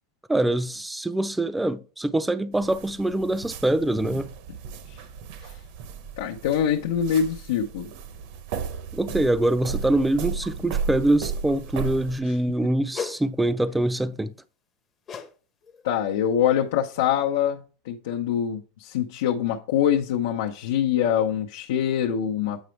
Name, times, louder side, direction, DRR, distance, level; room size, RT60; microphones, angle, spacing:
voice 1, 0.3-4.3 8.9-14.3, right 1 dB, 5° right, 0.4 m, -24 dB
sound 1, 2.5-12.2, right 6 dB, 55° right, 0.8 m, -35 dB
voice 2, 6.2-7.9 12.2-12.4 15.8-22.6, left 9 dB, 80° left, 0.8 m, -24 dB
sound 2, 12.9-13.2 15.1-15.3 15.6-15.9 16.5-16.6, left 6 dB, 25° left, 0.8 m, -34 dB
8.1 x 5.1 x 3.2 m
supercardioid pair, 145°, 0 cm